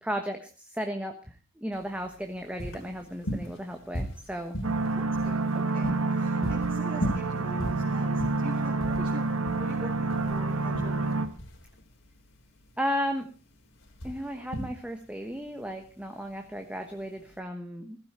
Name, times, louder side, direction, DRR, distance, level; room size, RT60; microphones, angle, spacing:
voice 1, 0.0-4.6 12.8-13.3 14.0-18.0, equal, 5° right, 5 dB, 1.2 m, -34 dB
sound 1, 1.7-17.4, equal, 70° left, 3.6 m, -38 dB
sound 2, 4.6-11.3, right 3 dB, 85° right, 1.7 m, -28 dB
voice 2, 4.9-11.2, right 1 dB, 30° right, -4 dB, 3.4 m, -42 dB
15.5 x 15.5 x 4.3 m, 0.35 s
head